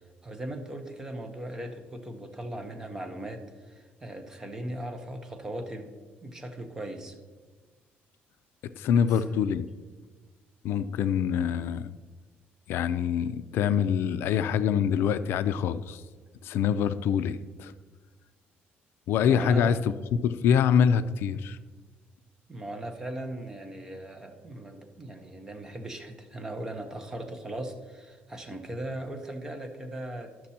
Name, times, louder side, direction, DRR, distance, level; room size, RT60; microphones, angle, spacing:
voice 1, 0.2-5.9 6.2-7.2 9.1-9.2 11.3-11.4 19.2-19.7 22.5-30.5, right 1 dB, 15° right, 5 dB, 0.8 m, -38 dB
voice 2, 8.8-9.7 10.6-11.9 12.7-16.0 16.4-17.7 19.1-19.8 20.2-21.6, left 8 dB, 70° left, 13 dB, 0.4 m, -25 dB
12.0 x 6.0 x 4.3 m, 1.4 s
cardioid pair, 175°, 4 cm